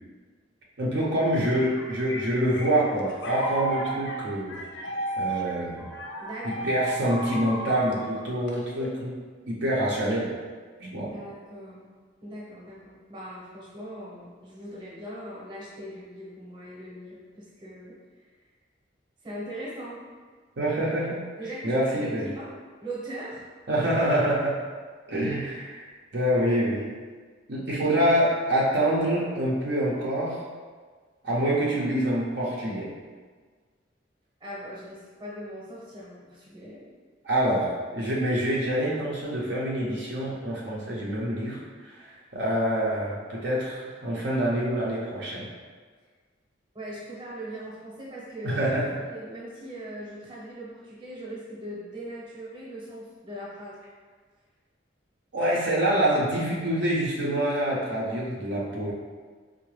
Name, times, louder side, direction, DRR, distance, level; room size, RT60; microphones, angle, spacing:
voice 1, 0.8-4.5 5.2-5.9 6.6-9.1 9.5-10.3 10.8-11.1 20.6-21.2 21.6-22.3 23.7-24.6 25.1-25.8 26.1-26.9 27.5-30.4 31.2-32.9 37.2-37.7 37.9-45.5 48.4-48.9 55.3-58.9, right 1 dB, 65° right, -5 dB, 0.6 m, -26 dB
sound 1, 1.5-9.1, right 2 dB, 75° left, 0.6 m, -34 dB
voice 2, 6.2-6.7 11.0-11.9 12.2-18.3 19.2-20.0 21.4-22.5 22.8-23.5 34.4-36.9 46.7-53.8, right 1 dB, 25° right, -6 dB, 0.8 m, -40 dB
4.6 x 2.1 x 3.1 m, 1.5 s
head